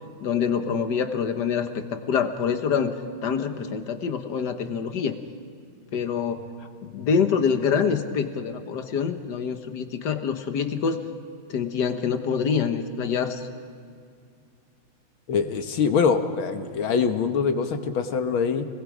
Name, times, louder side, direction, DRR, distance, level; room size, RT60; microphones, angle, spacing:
voice 1, 0.2-3.0 3.2-5.2 5.9-6.5 6.8-11.0 11.5-13.5, left 6 dB, 55° left, 7 dB, 1.7 m, -26 dB
voice 2, 15.3-18.7, left 6 dB, 75° left, 7 dB, 2.0 m, -24 dB
29.0 x 21.0 x 5.0 m, 2.3 s
omnidirectional pair, 2.3 m